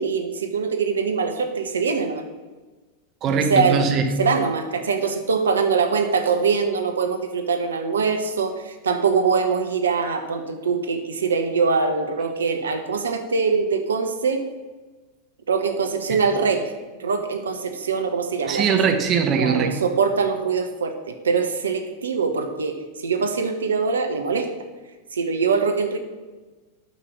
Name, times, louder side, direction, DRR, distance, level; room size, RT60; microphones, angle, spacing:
voice 1, 0.0-2.2 3.3-3.8 4.2-14.5 15.5-16.7 17.0-18.6 19.4-24.5 25.1-26.0, right 5 dB, 70° right, 6 dB, 1.1 m, -23 dB
voice 2, 3.2-4.1 16.1-16.2 18.5-19.8, right 6 dB, 30° right, 4 dB, 1.5 m, -21 dB
9.3 x 6.7 x 7.3 m, 1.2 s
figure-of-eight pair, 90°, 0 cm